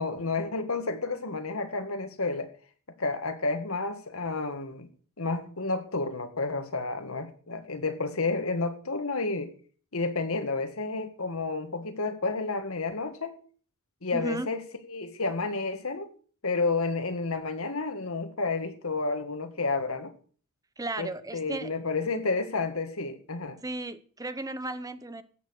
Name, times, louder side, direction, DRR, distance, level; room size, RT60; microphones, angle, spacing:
voice 1, 0.0-2.5 3.0-4.9 5.2-9.5 9.9-13.3 14.0-14.6 14.9-16.1 16.4-20.1 21.0-23.6, left 3 dB, 70° left, 1.8 m, -30 dB
voice 2, 14.1-14.5 20.8-21.7 23.6-25.2, right 2 dB, 15° right, 0.9 m, -35 dB
14.5 x 8.9 x 6.5 m
head